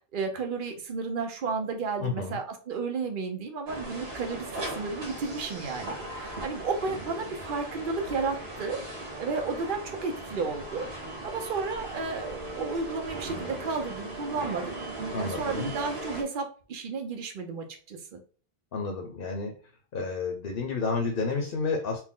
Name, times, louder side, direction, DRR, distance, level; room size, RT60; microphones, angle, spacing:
voice 1, 0.1-10.9 11.2-14.7 15.2-18.2, right 4 dB, 55° right, 5 dB, 0.9 m, -33 dB
voice 2, 2.0-2.4 15.1-15.7 18.7-19.6 19.9-22.0, left 4 dB, 65° left, 3 dB, 0.9 m, -30 dB
sound 1, 3.7-16.2, right 1 dB, 75° right, 1.5 m, -38 dB
4.4 x 2.1 x 3.7 m, 0.39 s
omnidirectional pair, 1.0 m